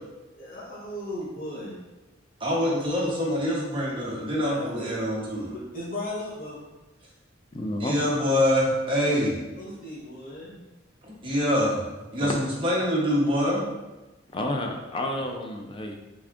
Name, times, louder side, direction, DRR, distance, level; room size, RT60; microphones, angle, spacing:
voice 1, 0.4-1.8 4.4-4.9 5.5-6.7 9.6-10.7, left 1 dB, 45° left, -8 dB, 1.1 m, -37 dB
voice 2, 2.4-5.5 7.8-9.4 11.0-11.8 12.1-13.7, equal, 25° right, -5 dB, 0.8 m, -25 dB
voice 3, 7.5-8.0 12.2-12.4 14.3-16.0, left 1 dB, 25° left, 3 dB, 0.3 m, -30 dB
3.5 x 3.4 x 2.4 m, 1.1 s
head